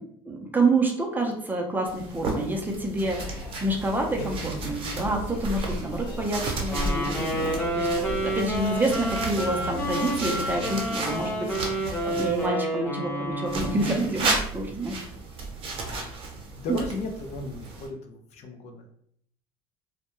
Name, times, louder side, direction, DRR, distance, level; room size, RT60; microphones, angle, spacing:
voice 1, 0.3-15.0, right 2 dB, 15° right, 1 dB, 0.5 m, -28 dB
sound 1, 1.8-12.5 13.5-17.9, right 3 dB, 45° right, 0.8 m, -34 dB
sound 2, 3.0-10.8, equal, 85° left, 0.9 m, -36 dB
Wind instrument woodwind instrument, 6.7-14.1, right 1 dB, 10° left, 0.9 m, -29 dB
voice 2, 16.5-18.9, left 2 dB, 60° left, 5 dB, 0.5 m, -35 dB
2.2 x 2.2 x 3.0 m, 0.65 s
supercardioid pair, 95°, 13 cm